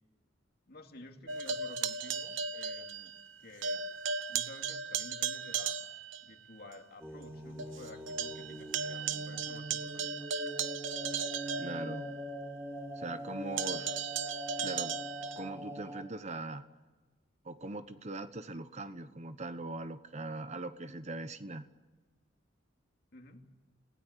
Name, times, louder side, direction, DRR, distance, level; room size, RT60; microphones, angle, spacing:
voice 1, 0.7-3.1 3.4-3.9 4.3-5.8 6.2-10.3 23.1-23.4, left 2 dB, 55° left, 4 dB, 2.5 m, -52 dB
sound 1, 1.3-3.3 3.6-6.3 6.7-6.8 7.2-7.3 7.6-12.4 13.6-15.5, right 5 dB, 85° right, 1.1 m, -36 dB
sound 2, 7.0-16.0, right 1 dB, 15° right, 2.7 m, -43 dB
voice 2, 11.6-12.1 13.0-14.0 14.6-15.0 15.4-16.6 17.4-21.7, right 2 dB, 35° right, 11 dB, 1.0 m, -41 dB
29.5 x 17.0 x 9.8 m, 1.2 s
head